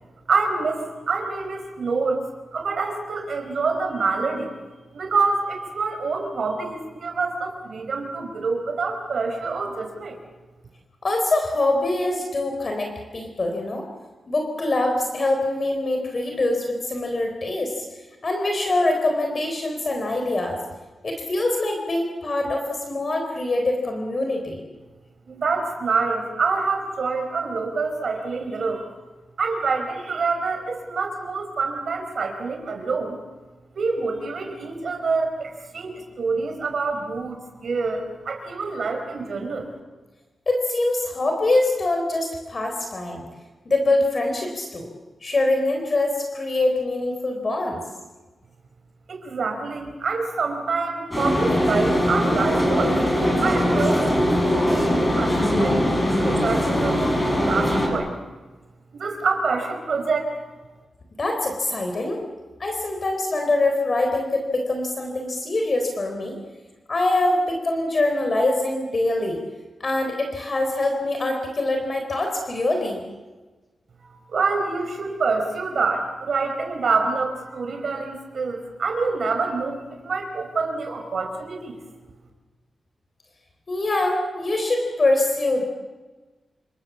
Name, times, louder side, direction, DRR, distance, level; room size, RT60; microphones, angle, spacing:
voice 1, 0.3-2.2 2.5-4.5 4.9-10.2 25.3-28.8 29.4-33.2 33.7-39.7 49.1-53.0 53.3-57.1 57.4-58.1 58.9-60.3 74.0-81.8, right 4 dB, 55° right, 3 dB, 4.9 m, -26 dB
voice 2, 11.0-13.8 14.3-17.9 18.2-20.6 21.0-24.6 40.5-43.3 43.7-44.9 45.2-47.8 61.2-62.2 62.6-66.4 66.9-69.4 69.8-73.0 83.7-85.6, left 2 dB, 35° left, 3 dB, 4.0 m, -24 dB
sound 1, 51.1-57.9, equal, 15° left, 7.5 m, -21 dB
29.0 x 28.0 x 7.3 m, 1.3 s
wide cardioid pair, 160°, 0 cm